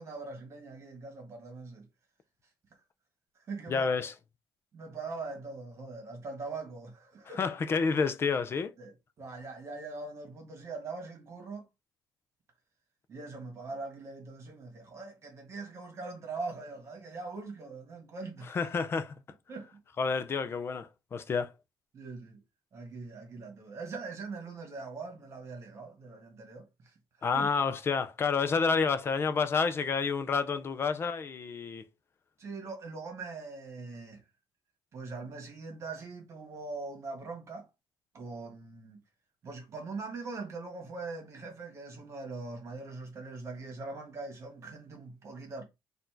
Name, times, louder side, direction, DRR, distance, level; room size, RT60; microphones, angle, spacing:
voice 1, 0.0-1.9 3.5-4.1 4.7-7.4 8.8-11.7 13.1-18.7 19.5-19.8 21.9-22.4 22.7-26.9 27.3-27.5 32.4-34.2 34.9-37.7 38.1-39.0 39.4-45.6, right 3 dB, 35° right, 1.5 m, -42 dB
voice 2, 3.7-4.1 7.4-8.7 18.5-19.1 20.0-21.5 27.2-31.8, left 5 dB, 30° left, 0.5 m, -29 dB
4.2 x 2.6 x 4.3 m
cardioid pair, 160°, 8 cm